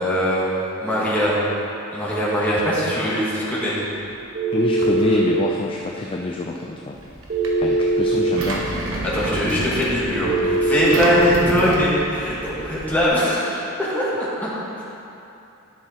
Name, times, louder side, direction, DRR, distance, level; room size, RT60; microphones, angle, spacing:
voice 1, 0.0-1.4 1.9-3.8 8.1-8.3 9.0-14.5, equal, 10° left, -9 dB, 1.9 m, -22 dB
Telephone, 4.3-5.4 7.3-8.3 10.2-11.3, right 2 dB, 50° right, 1.3 m, -20 dB
voice 2, 4.5-7.0 7.6-8.7, left 2 dB, 25° left, 0 dB, 0.4 m, -26 dB
Engine, 7.0-13.1, right 1 dB, 80° right, 1.1 m, -30 dB
11.0 x 5.9 x 4.3 m, 2.8 s
head